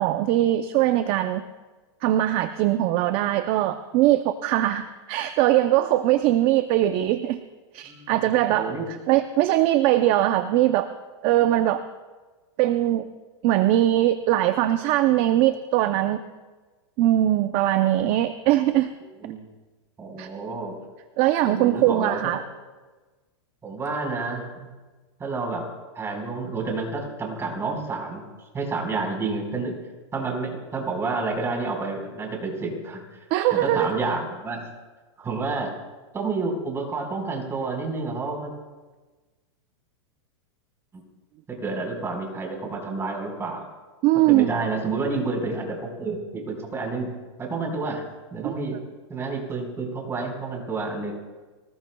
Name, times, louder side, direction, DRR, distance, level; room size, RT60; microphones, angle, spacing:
voice 1, 0.0-1.4 2.0-7.4 7.7-10.9 11.2-11.8 12.6-13.1 13.4-16.2 17.0-18.9 20.2-20.3 21.2-22.4 33.3-34.0 44.0-44.5 48.4-48.5, right 14 dB, 40° right, 9 dB, 0.7 m, -21 dB
voice 2, 7.8-8.2 8.5-8.9 19.2-19.4 20.0-20.8 21.5-22.3 23.6-24.7 25.2-25.7 25.9-28.2 28.5-29.7 30.1-33.2 33.6-34.6 35.2-35.7 36.1-38.5 40.9-41.0 41.5-43.7 44.3-47.1 47.4-48.1 48.3-48.8 49.1-51.1, right 3 dB, 15° right, 1 dB, 4.7 m, -29 dB
25.5 x 20.0 x 2.3 m, 1.3 s
supercardioid pair, 140°, 15 cm